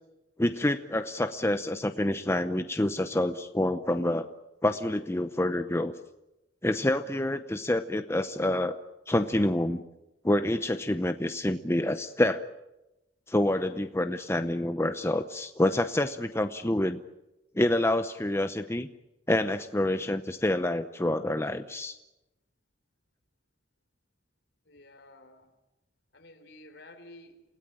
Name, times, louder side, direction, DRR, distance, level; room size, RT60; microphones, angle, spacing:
voice 1, 0.4-4.3 4.6-5.9 6.6-8.8 9.1-9.8 10.2-12.4 13.3-17.0 17.5-18.9 19.3-22.0, left 1 dB, 15° left, 8 dB, 0.8 m, -27 dB
voice 2, 24.7-25.5 26.1-27.4, left 1 dB, 65° left, 7 dB, 3.8 m, -51 dB
29.0 x 17.5 x 8.9 m, 0.95 s
head